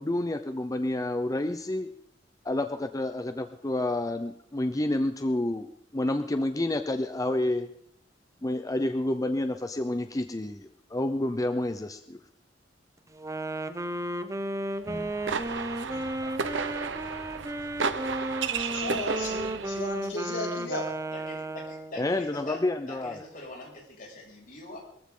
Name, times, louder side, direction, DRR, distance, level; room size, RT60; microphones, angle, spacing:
voice 1, 0.0-1.9 2.4-7.7 8.4-12.2 14.9-15.1 22.0-23.2, left 1 dB, 20° left, 8 dB, 0.6 m, -29 dB
Wind instrument woodwind instrument, 13.1-22.1, right 1 dB, 15° right, 0.7 m, -34 dB
sound 1, 14.9-19.9, right 5 dB, 85° right, 1.0 m, -33 dB
voice 2, 18.1-20.9, left 1 dB, 85° left, -2 dB, 7.3 m, -36 dB
voice 3, 21.1-24.8, left 2 dB, 50° left, -2 dB, 6.3 m, -44 dB
22.5 x 15.0 x 3.8 m, 0.71 s
head